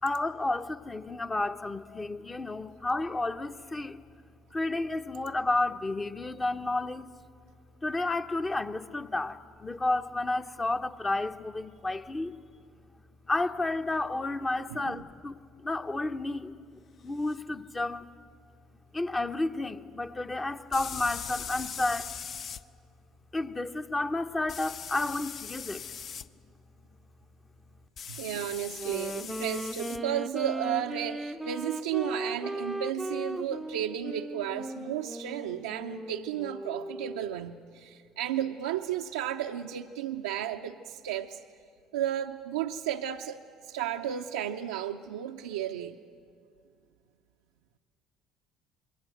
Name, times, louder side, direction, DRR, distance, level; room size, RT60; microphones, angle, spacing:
voice 1, 0.0-4.0 4.5-7.1 7.8-12.4 13.3-18.1 18.9-22.1 23.3-25.8, left 2 dB, 25° left, 1.0 m, -31 dB
voice 2, 14.7-15.0 28.1-41.4 41.9-46.0, right 10 dB, 80° right, 0.6 m, -33 dB
sound 1, 17.3-17.4 20.7-22.6 24.5-26.3 28.0-30.0, left 7 dB, 50° left, 0.6 m, -40 dB
Wind instrument woodwind instrument, 28.7-37.4, right 1 dB, 5° right, 0.6 m, -37 dB
26.5 x 22.0 x 7.9 m
hypercardioid pair, 55°, 0 cm